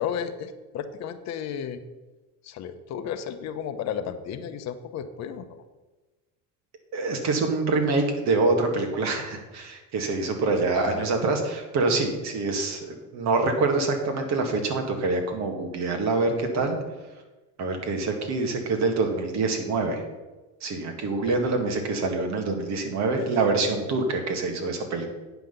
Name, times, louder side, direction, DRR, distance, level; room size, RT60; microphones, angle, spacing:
voice 1, 0.0-1.8 2.4-5.6 10.7-11.1 21.3-21.4, left 8 dB, 45° left, 9 dB, 0.8 m, -33 dB
voice 2, 6.9-16.8 17.6-20.0 20.6-25.1, right 3 dB, 45° right, 4 dB, 1.8 m, -25 dB
9.0 x 5.7 x 6.9 m, 1.2 s
cardioid pair, 155°, 37 cm